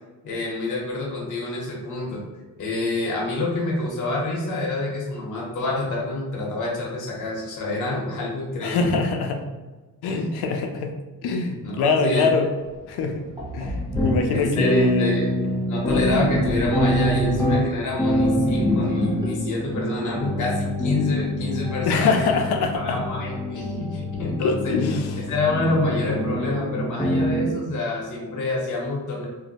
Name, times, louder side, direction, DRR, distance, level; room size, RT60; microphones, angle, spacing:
voice 1, 0.2-2.2 2.6-9.0 10.1-10.3 11.6-12.3 14.3-15.3 15.7-22.3 22.7-24.8 25.3-29.3, left 2 dB, 55° left, -3 dB, 0.8 m, -27 dB
voice 2, 8.6-9.4 10.0-10.9 11.2-12.5 12.8-13.2 13.5-13.8 14.0-15.3 21.8-23.0 24.4-25.2, left 4 dB, 90° left, 4 dB, 0.5 m, -23 dB
Sink (filling or washing), 12.7-12.8 13.4-20.7, left 1 dB, 10° right, 0.9 m, -29 dB
sound 1, 13.9-27.5, equal, 10° left, 0.4 m, -25 dB
2.6 x 2.0 x 4.0 m, 1.2 s
cardioid pair, 90°, 37 cm